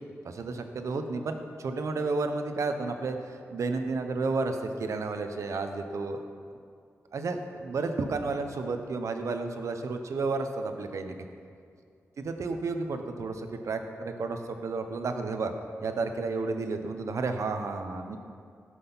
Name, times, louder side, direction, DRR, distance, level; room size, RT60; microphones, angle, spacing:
voice 1, 0.2-6.2 7.1-11.2 12.2-15.5 15.8-18.2, right 3 dB, 75° right, 6 dB, 1.1 m, -32 dB
16.5 x 6.5 x 5.8 m, 2.3 s
cardioid pair, 75°, 5 cm